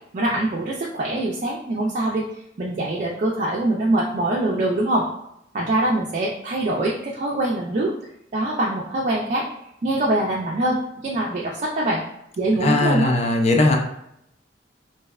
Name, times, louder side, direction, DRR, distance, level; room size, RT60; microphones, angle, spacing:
voice 1, 0.1-2.2 2.6-5.0 5.5-7.9 8.3-9.4 9.8-12.0 12.4-13.1, right 1 dB, 40° right, -3 dB, 0.3 m, -23 dB
voice 2, 12.6-13.8, left 2 dB, 35° left, 2 dB, 0.4 m, -19 dB
2.6 x 2.1 x 2.3 m, 0.76 s
head